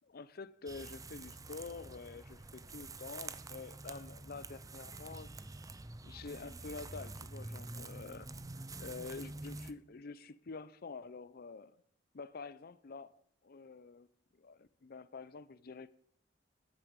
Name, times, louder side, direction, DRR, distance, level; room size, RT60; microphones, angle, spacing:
voice 1, 0.1-5.3 6.0-11.8 12.1-14.1 14.3-15.9, left 4 dB, 55° left, 0.6 m, -48 dB
sound 1, 0.7-9.7, right 3 dB, 20° right, 0.6 m, -47 dB
13.0 x 9.2 x 5.3 m
head